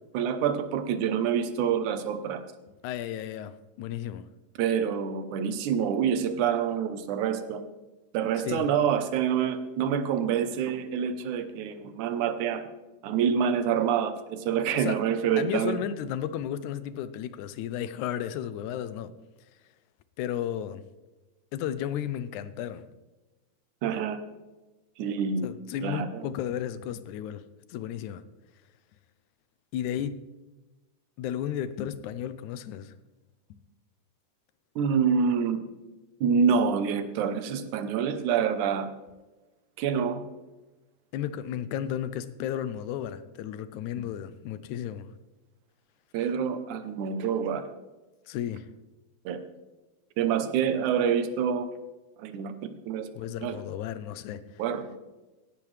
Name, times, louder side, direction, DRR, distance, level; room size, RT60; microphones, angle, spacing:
voice 1, 0.1-2.4 4.6-7.6 8.1-12.6 13.0-15.8 23.8-24.2 25.0-25.5 25.8-26.3 34.8-35.6 36.2-38.9 39.8-40.2 46.1-47.6 49.3-49.4 50.2-51.7 52.2-53.1 53.4-53.6 54.6-55.0, right 7 dB, 85° right, 2.4 m, -27 dB
voice 2, 2.8-4.3 8.4-8.7 14.7-15.0 15.4-19.1 20.2-20.8 21.5-22.9 25.4-27.4 27.7-28.2 29.7-30.2 31.2-32.9 33.5-33.6 41.1-45.1 48.3-48.7 53.2-54.4, left 10 dB, 85° left, 2.1 m, -33 dB
17.0 x 10.5 x 3.3 m
omnidirectional pair, 3.4 m